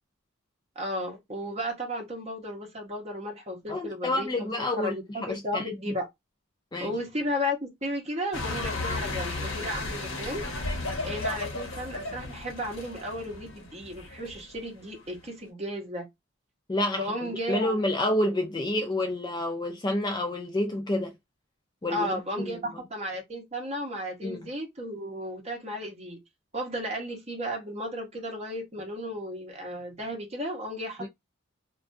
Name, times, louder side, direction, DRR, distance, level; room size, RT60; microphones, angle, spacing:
voice 1, 0.8-6.1 6.8-10.5 11.0-16.1 16.9-17.9 21.9-26.2 26.5-31.1, equal, 30° right, 0.8 m, -34 dB
voice 2, 3.7-4.9 5.2-5.9 6.7-6.9 16.7-21.1 21.8-22.6 24.2-24.4 31.0-31.1, left 1 dB, 20° left, 0.3 m, -29 dB
sound 1, 8.3-15.2, left 2 dB, 70° left, 0.9 m, -34 dB
2.5 x 2.2 x 2.5 m
head